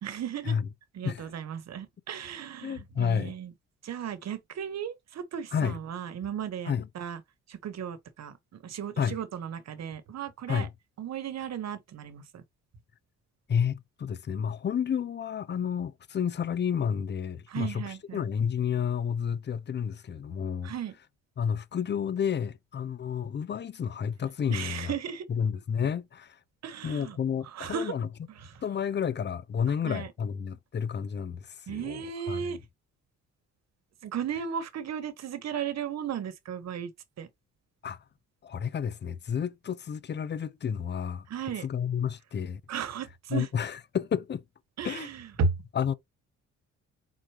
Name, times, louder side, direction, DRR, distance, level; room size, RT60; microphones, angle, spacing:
voice 1, 0.0-0.6 0.9-3.5 3.8-7.2 7.5-10.7 11.0-12.4 17.5-18.3 20.6-20.9 24.5-25.2 26.6-27.2 27.5-27.9 28.3-28.6 29.8-30.1 31.7-32.6 34.0-36.9 37.2-37.3 41.3-41.7 42.7-43.5 44.8-45.6, right 7 dB, 60° right, 1.2 m, -35 dB
voice 2, 2.6-3.4 5.5-5.8 6.7-6.9 9.0-9.2 10.5-10.7 13.5-20.7 21.4-24.9 25.3-26.4 26.8-28.1 28.6-32.6 37.8-38.0 38.4-41.3 41.6-42.6 43.3-44.4 44.8-45.1 45.7-45.9, left 7 dB, 35° left, 0.5 m, -31 dB
4.5 x 4.0 x 2.9 m
cardioid pair, 90°, 30 cm